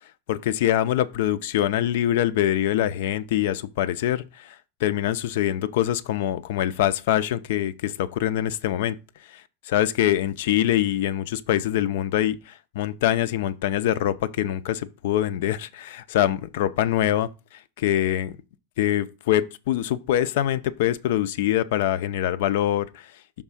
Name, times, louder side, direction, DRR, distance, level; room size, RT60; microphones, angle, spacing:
voice 1, 0.3-9.0 9.2-18.4 18.8-23.1, left 12 dB, 70° left, 0.6 m, -24 dB
6.0 x 3.6 x 5.7 m
supercardioid pair, 145°, 0 cm